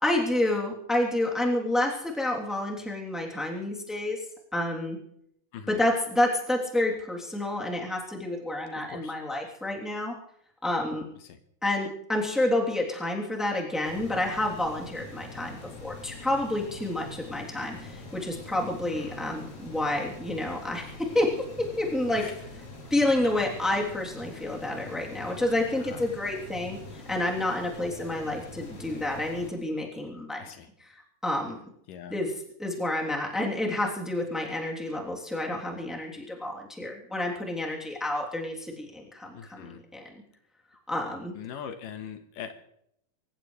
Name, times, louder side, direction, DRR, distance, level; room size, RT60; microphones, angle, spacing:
voice 1, 0.0-4.2 4.5-5.0 5.7-10.1 10.6-11.1 11.6-21.3 21.6-22.2 22.9-30.5 30.8-31.6 32.1-32.3 32.6-40.1 40.9-41.3, left 1 dB, ahead, -1 dB, 2.7 m, -29 dB
sound 1, 13.8-29.5, left 3 dB, 55° left, 4.7 m, -44 dB
voice 2, 18.8-19.2 22.2-22.3 25.8-26.0 30.4-30.7 31.9-32.1 39.3-39.8 41.4-42.5, left 8 dB, 80° left, 7 dB, 2.8 m, -41 dB
26.5 x 15.0 x 3.3 m, 0.72 s
omnidirectional pair, 3.8 m